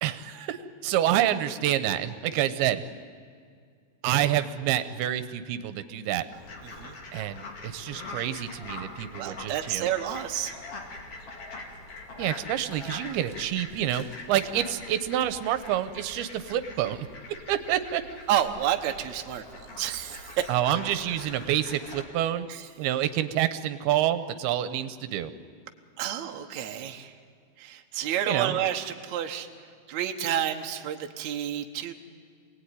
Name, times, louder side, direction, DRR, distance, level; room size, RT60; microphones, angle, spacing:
voice 1, 0.0-2.8 4.0-6.3 7.1-9.9 12.2-17.1 17.5-18.0 20.5-22.5 22.8-25.3 28.3-28.6, right 12 dB, 85° right, 12 dB, 2.8 m, -28 dB
Fowl, 6.3-22.0, left 3 dB, 40° left, 3.0 m, -43 dB
voice 2, 6.6-7.0 9.2-10.6 18.3-20.5 22.5-22.7 26.0-27.1 27.6-29.5 29.9-31.9, right 10 dB, 60° right, 4 dB, 2.2 m, -30 dB
27.0 x 19.0 x 9.8 m, 2.1 s
omnidirectional pair, 4.4 m